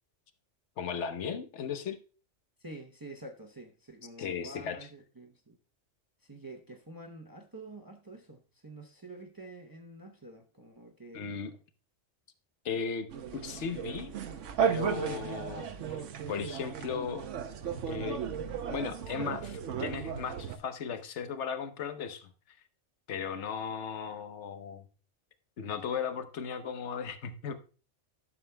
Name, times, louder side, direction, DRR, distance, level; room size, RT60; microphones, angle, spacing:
voice 1, 0.8-2.0 4.2-4.8 11.1-11.5 12.6-14.1 14.6-17.3 17.9-18.2 18.7-22.6 23.1-24.8 25.6-27.5, left 6 dB, 75° left, 1.1 m, -36 dB
voice 2, 2.6-5.6 6.2-11.2, right 2 dB, 20° right, 0.7 m, -48 dB
sound 1, 13.1-20.6, right 8 dB, 90° right, 1.1 m, -35 dB
12.5 x 7.1 x 2.2 m
omnidirectional pair, 1.2 m